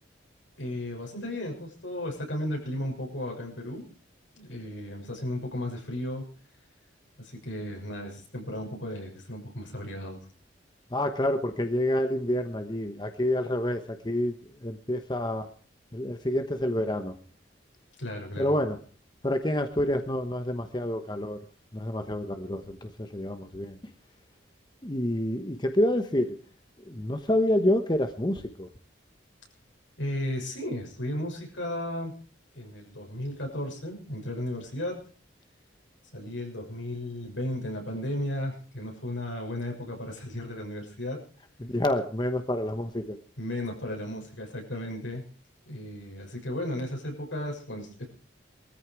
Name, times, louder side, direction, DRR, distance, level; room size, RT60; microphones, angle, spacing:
voice 1, 0.6-3.8 4.4-6.3 7.2-10.2 18.0-18.6 30.0-32.1 32.5-35.0 36.1-41.2 43.4-45.2 45.6-48.1, left 1 dB, 80° left, 1 dB, 6.6 m, -34 dB
voice 2, 10.9-14.3 14.6-15.5 15.9-17.2 18.4-18.8 19.2-21.4 21.7-23.9 24.8-26.4 26.8-28.7 41.6-43.2, left 1 dB, 20° left, 7 dB, 1.0 m, -28 dB
20.0 x 14.0 x 4.8 m, 0.40 s
head